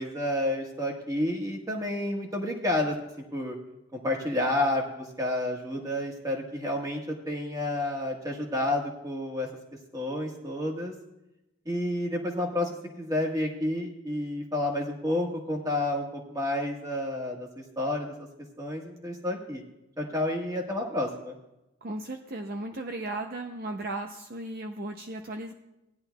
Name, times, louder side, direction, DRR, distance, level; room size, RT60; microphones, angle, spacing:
voice 1, 0.0-3.0 3.3-3.6 3.9-9.5 9.9-10.9 11.6-12.7 13.0-18.3 18.6-19.6 20.0-21.3, left 1 dB, 15° right, 1 dB, 1.4 m, -30 dB
voice 2, 21.8-25.5, right 2 dB, 50° right, 4 dB, 0.6 m, -36 dB
17.5 x 10.5 x 2.3 m, 0.94 s
head